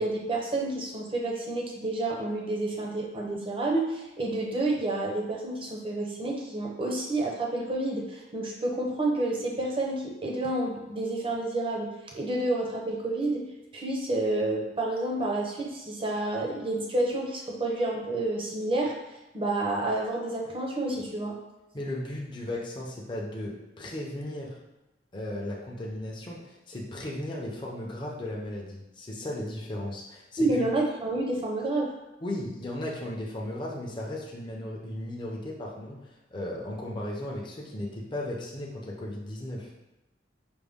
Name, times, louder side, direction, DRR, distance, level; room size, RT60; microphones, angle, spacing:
voice 1, 0.0-13.4 13.7-19.0 19.3-21.4 30.4-31.9, right 2 dB, 30° right, -1 dB, 0.7 m, -29 dB
voice 2, 21.7-24.6 25.1-30.7 32.2-39.7, left 1 dB, 25° left, -3 dB, 0.6 m, -36 dB
5.1 x 2.2 x 3.5 m, 1.0 s
head